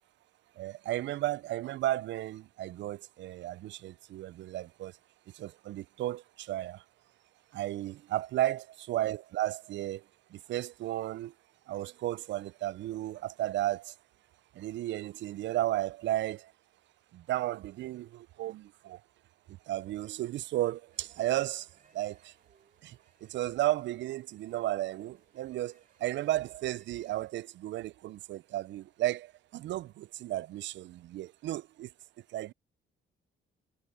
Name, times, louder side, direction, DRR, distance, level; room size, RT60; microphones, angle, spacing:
voice 1, 0.6-4.9 5.3-6.8 7.5-10.0 10.3-11.3 11.7-13.9 14.6-16.5 17.1-19.0 19.7-21.7 21.9-22.3 22.8-23.0 23.2-31.9 32.3-32.5, right 14 dB, 65° right, 0.4 m, -34 dB
sound 1, 20.9-27.3, right 6 dB, 45° right, 3.0 m, -67 dB
cardioid pair, 90°, 20 cm